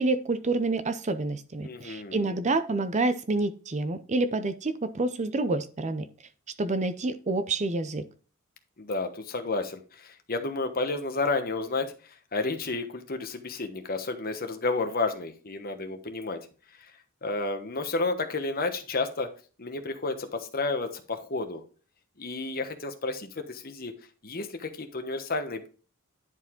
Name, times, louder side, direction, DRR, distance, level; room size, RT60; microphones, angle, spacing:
voice 1, 0.0-6.0 6.6-8.0, right 2 dB, 30° right, 11 dB, 0.6 m, -28 dB
voice 2, 1.6-2.3 8.8-11.9 12.3-16.4 17.2-19.3 19.6-21.6 22.2-23.9 24.2-25.7, left 3 dB, 40° left, 6 dB, 1.2 m, -31 dB
10.5 x 4.8 x 3.8 m, 0.38 s
head